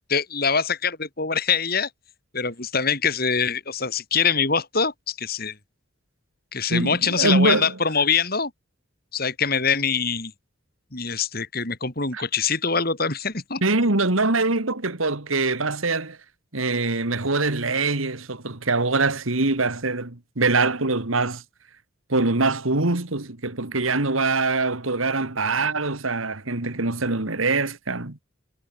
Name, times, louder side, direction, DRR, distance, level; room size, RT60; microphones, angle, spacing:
voice 1, 0.1-1.9 2.3-5.6 6.5-8.5 9.1-10.3 10.9-13.6, left 5 dB, 45° left, 3.7 m, -24 dB
voice 2, 6.7-7.8 12.1-12.2 13.6-16.2 16.5-21.4 22.1-28.2, right 3 dB, 80° right, 2.3 m, -23 dB
head